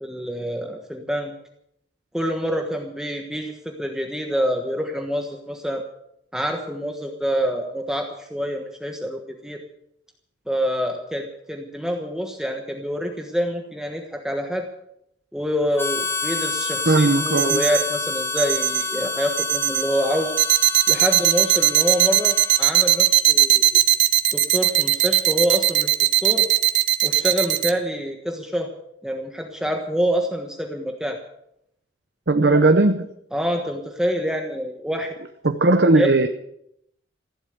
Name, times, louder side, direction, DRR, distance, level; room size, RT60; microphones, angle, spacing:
voice 1, 0.0-1.3 2.1-5.8 6.3-9.6 10.5-14.7 15.3-20.4 20.9-23.6 24.3-25.9 26.2-26.5 27.0-28.7 29.0-31.2 32.6-32.7 33.3-35.1 36.0-36.1, equal, 5° right, 3 dB, 1.3 m, -26 dB
Harmonica, 15.8-23.1, left 3 dB, 15° left, 1.0 m, -29 dB
voice 2, 16.9-17.6 32.3-33.1 35.4-36.3, right 2 dB, 60° right, 7 dB, 0.9 m, -17 dB
sound 1, 17.4-17.8 18.4-18.8 19.4-19.8 20.4-27.7, right 14 dB, 85° right, 1.0 m, -17 dB
15.5 x 11.5 x 7.9 m, 0.75 s
head